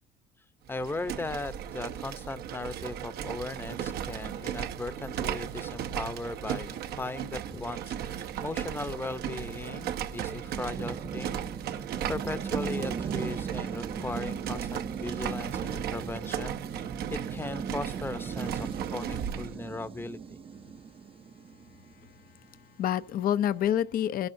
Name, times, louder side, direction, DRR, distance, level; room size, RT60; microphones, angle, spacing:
voice 1, 0.7-11.4 11.7-20.2, left 3 dB, 15° left, 0.7 m, -38 dB
sound 1, 0.7-19.5, right 9 dB, 70° right, 0.8 m, -36 dB
sound 2, 7.3-22.6, right 6 dB, 35° right, 0.6 m, -39 dB
voice 2, 21.7-24.3, left 10 dB, 60° left, 0.6 m, -29 dB
29.0 x 12.0 x 2.7 m
cardioid pair, 110°, 17 cm